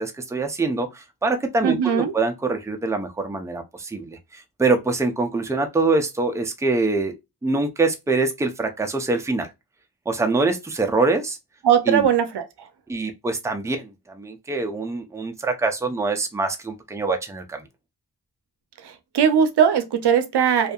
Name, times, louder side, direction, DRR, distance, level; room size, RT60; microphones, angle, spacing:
voice 1, 0.0-7.1 7.4-9.5 10.1-11.4 11.9-12.1 12.9-17.6, right 3 dB, 10° right, 0.4 m, -24 dB
voice 2, 1.6-2.1 11.6-12.7 18.8-20.7, right 8 dB, 85° right, 0.6 m, -20 dB
2.6 x 2.4 x 2.2 m
wide cardioid pair, 90°, 39 cm